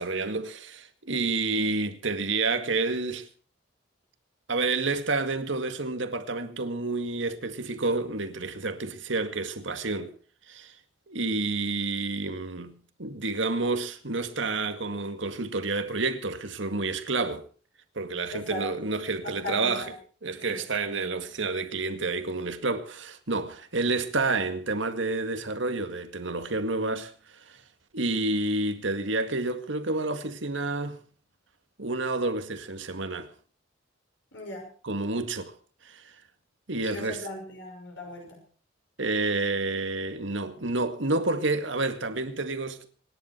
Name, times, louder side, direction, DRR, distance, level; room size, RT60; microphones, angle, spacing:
voice 1, 0.0-3.3 4.5-10.1 10.5-10.7 11.1-17.4 18.0-19.9 20.2-27.6 27.9-31.0 31.8-33.3 34.8-35.5 35.8-36.1 36.7-37.3 39.0-42.9, right 3 dB, 75° right, 2.0 m, -29 dB
voice 2, 18.3-18.7 19.2-19.9 20.4-20.6 34.3-34.7 36.8-38.4, left 2 dB, 70° left, 6.0 m, -38 dB
26.0 x 11.0 x 4.5 m
head